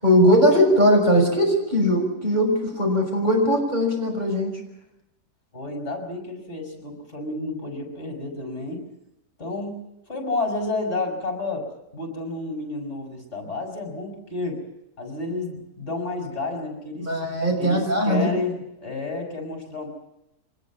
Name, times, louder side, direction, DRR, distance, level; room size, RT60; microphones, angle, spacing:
voice 1, 0.0-4.6 17.0-18.3, equal, 30° right, 1 dB, 6.3 m, -20 dB
voice 2, 5.5-8.9 9.4-9.8 10.1-14.6 15.0-17.2 17.6-19.9, left 2 dB, 45° left, 2 dB, 6.5 m, -30 dB
24.5 x 20.0 x 7.4 m, 0.89 s
omnidirectional pair, 1.6 m